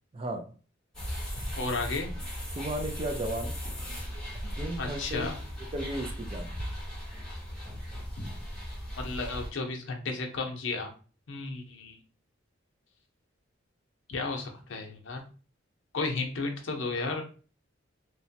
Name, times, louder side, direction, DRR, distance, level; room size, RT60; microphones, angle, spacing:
voice 1, 0.1-0.5 2.6-3.6 4.4-5.3 5.7-6.6, right 1 dB, 30° right, 5 dB, 0.4 m, -34 dB
sound 1, 0.9-9.5, equal, 5° left, 1.0 m, -37 dB
voice 2, 1.6-2.1 4.8-5.4 8.2-8.3 9.0-10.9 11.3-12.0 14.1-15.2 15.9-17.2, left 3 dB, 70° left, 2 dB, 0.6 m, -33 dB
2.9 x 2.1 x 2.7 m, 0.38 s
head